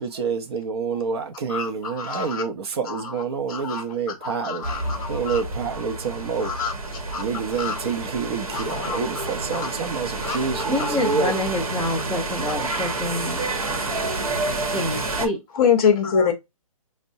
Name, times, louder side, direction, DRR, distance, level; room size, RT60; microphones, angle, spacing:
voice 1, 0.0-4.7 5.1-6.5 7.2-11.3, right 5 dB, 45° right, 0.7 m, -28 dB
voice 2, 1.5-2.4 2.8-3.2 3.5-5.4 6.4-6.7 7.1-7.2 7.5-7.8 8.5-9.7 10.2-10.9 15.5-16.3, left 6 dB, 35° left, 0.6 m, -26 dB
sound 1, 4.6-15.3, right 2 dB, 75° right, 1.0 m, -29 dB
voice 3, 10.7-13.5 14.7-15.4, left 1 dB, 5° right, 0.6 m, -27 dB
5.1 x 2.1 x 2.6 m
hypercardioid pair, 150°, 18 cm